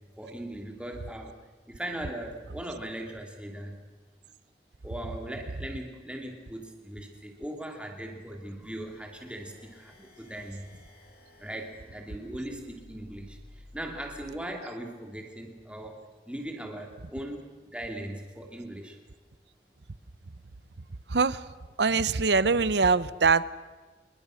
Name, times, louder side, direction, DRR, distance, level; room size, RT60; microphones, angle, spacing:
voice 1, 0.2-1.3 1.7-3.8 4.8-10.7 11.4-16.0 16.2-19.0, right 1 dB, 5° right, 2 dB, 2.8 m, -39 dB
sound 1, 8.4-14.3, left 1 dB, 60° left, 7.8 m, -54 dB
voice 2, 21.1-21.5 21.8-23.5, right 4 dB, 80° right, 16 dB, 0.8 m, -23 dB
27.0 x 22.0 x 6.4 m, 1.4 s
head